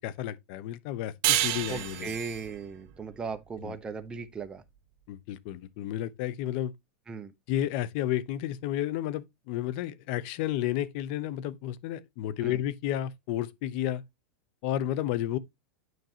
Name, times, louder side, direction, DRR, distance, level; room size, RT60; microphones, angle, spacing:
voice 1, 0.0-2.1 3.6-3.7 5.1-6.7 7.5-14.0 14.6-15.4, left 12 dB, 55° left, 0.8 m, -32 dB
sound 1, 1.2-4.4, right 14 dB, 50° right, 1.1 m, -31 dB
voice 2, 1.7-4.6 7.1-7.3 12.4-12.6, right 5 dB, 15° right, 0.8 m, -37 dB
9.4 x 5.3 x 2.9 m
supercardioid pair, 140°, 7 cm